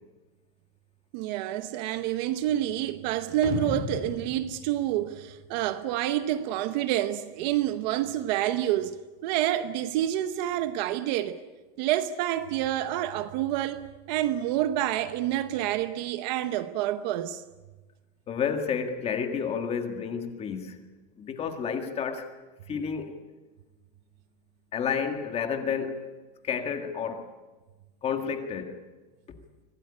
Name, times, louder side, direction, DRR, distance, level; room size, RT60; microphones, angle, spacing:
voice 1, 1.1-11.4 11.8-13.8 14.1-17.4, right 12 dB, 40° right, 0.9 m, -28 dB
sound 1, 3.4-5.9, left 5 dB, 40° left, 4.9 m, -36 dB
voice 2, 18.3-20.8 21.2-22.3 22.7-23.2 24.7-26.1 26.4-27.3 28.0-28.7, left 6 dB, 20° left, 1.8 m, -30 dB
25.0 x 17.0 x 9.9 m
supercardioid pair, 180°, 33 cm